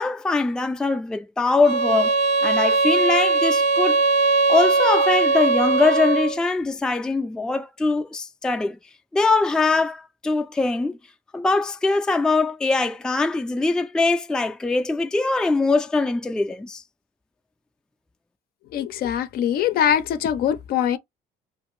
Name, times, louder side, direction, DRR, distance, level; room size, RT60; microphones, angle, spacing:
voice 1, 0.0-4.0 4.5-8.8 9.1-11.0 11.3-16.8, left 3 dB, 5° left, 0.3 m, -22 dB
sound 1, 1.6-6.4, right 3 dB, 85° right, 0.6 m, -20 dB
voice 2, 18.7-21.0, left 9 dB, 65° left, 0.5 m, -22 dB
2.6 x 2.5 x 3.1 m
cardioid pair, 110°, 17 cm